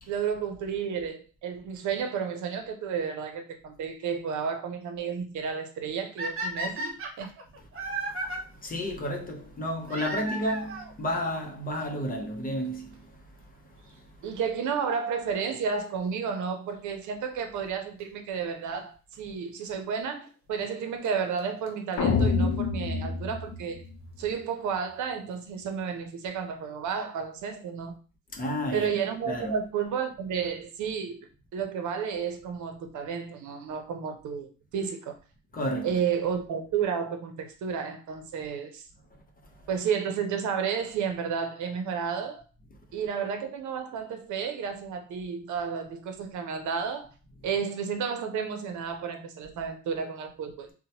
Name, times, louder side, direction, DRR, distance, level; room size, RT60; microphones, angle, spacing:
voice 1, 0.1-7.3 14.2-23.9 24.2-28.0 28.7-31.2 31.5-35.2 35.8-38.8 39.7-42.4 42.9-47.1 47.4-50.7, right 6 dB, 75° right, 0.7 m, -32 dB
sound 1, 6.2-8.4 9.9-10.9 11.9-12.0 12.6-12.7 12.9-13.0 14.9-15.2 18.0-18.1 19.1-19.2 20.7-20.8 21.0-21.1 21.4-21.5 21.7-21.8 21.9-22.0 22.2-22.3 22.5-22.6, right 1 dB, 45° right, 0.9 m, -34 dB
voice 2, 7.8-14.3 28.3-29.0 29.3-29.6 35.5-36.0 39.4-39.7, equal, 30° left, 0.7 m, -33 dB
sound 2, 22.0-24.3, left 4 dB, 65° left, 0.6 m, -27 dB
2.9 x 2.1 x 2.8 m
cardioid pair, 90°, 30 cm